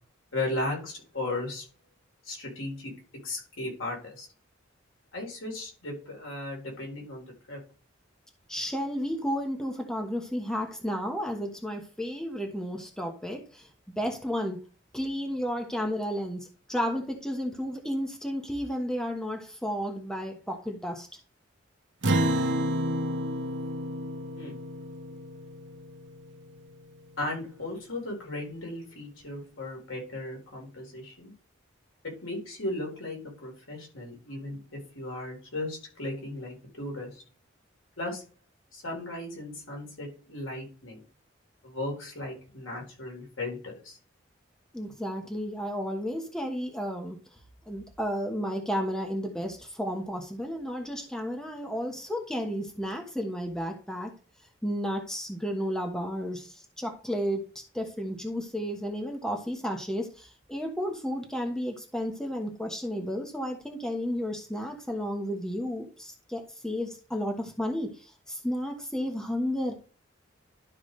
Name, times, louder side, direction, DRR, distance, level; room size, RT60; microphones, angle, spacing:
voice 1, 0.3-1.6 2.2-2.9 3.2-4.3 5.1-7.6 24.4-24.6 27.2-31.3 32.2-37.2 38.0-38.2 38.7-41.0 41.6-44.0, left 2 dB, 90° left, 0 dB, 4.1 m, -36 dB
voice 2, 8.5-13.7 14.0-14.6 14.9-21.1 44.7-47.2 47.7-54.1 54.6-57.4 57.7-69.7, equal, 5° left, 3 dB, 1.2 m, -32 dB
Acoustic guitar, 22.0-26.7, equal, 60° right, 1.1 m, -30 dB
12.0 x 6.0 x 3.2 m, 0.36 s
head